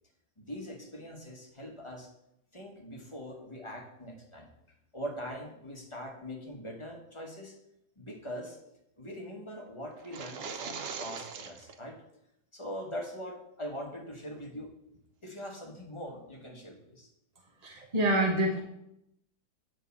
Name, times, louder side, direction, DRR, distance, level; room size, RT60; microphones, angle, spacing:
voice 1, 0.4-2.1 2.5-4.5 4.9-7.5 8.0-8.6 9.0-12.0 12.5-14.7 15.2-17.1, equal, 20° left, 0 dB, 1.1 m, -42 dB
sound 1, 10.0-11.8, right 5 dB, 70° right, 0.5 m, -40 dB
voice 2, 17.6-18.6, right 1 dB, 30° right, 0 dB, 0.8 m, -27 dB
8.9 x 3.7 x 6.9 m, 0.81 s
omnidirectional pair, 1.7 m